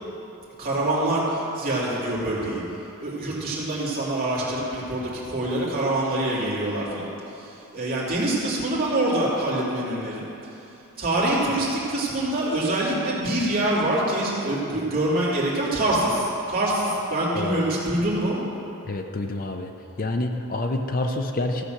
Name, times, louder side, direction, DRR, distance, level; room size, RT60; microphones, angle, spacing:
voice 1, 0.6-2.6 3.0-10.3 11.0-18.4, right 1 dB, 40° right, -7 dB, 3.0 m, -25 dB
voice 2, 18.9-19.7 20.0-21.6, left 2 dB, 40° left, 4 dB, 0.6 m, -27 dB
15.0 x 7.1 x 6.5 m, 3.0 s
head